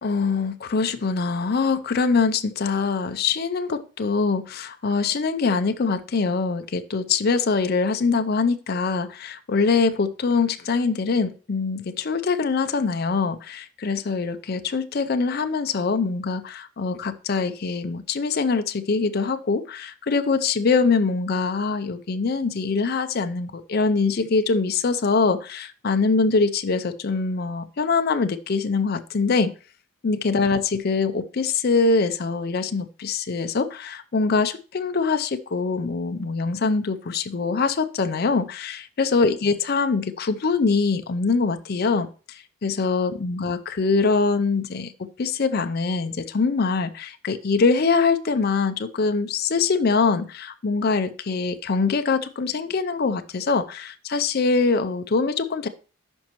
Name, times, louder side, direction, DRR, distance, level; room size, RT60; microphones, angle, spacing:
voice 1, 0.0-29.5 30.0-55.7, left 4 dB, 45° left, 9 dB, 0.5 m, -23 dB
12.5 x 5.3 x 3.0 m, 0.36 s
head